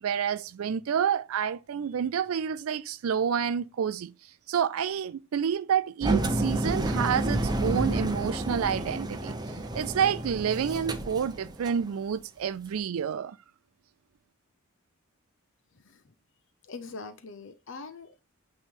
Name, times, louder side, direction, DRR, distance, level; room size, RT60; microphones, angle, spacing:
voice 1, 0.0-13.4, right 8 dB, 75° right, 0.4 m, -29 dB
Engine, 6.0-11.8, right 1 dB, 20° right, 0.7 m, -30 dB
voice 2, 16.7-18.2, left 4 dB, 60° left, 0.7 m, -42 dB
8.9 x 3.2 x 3.7 m
head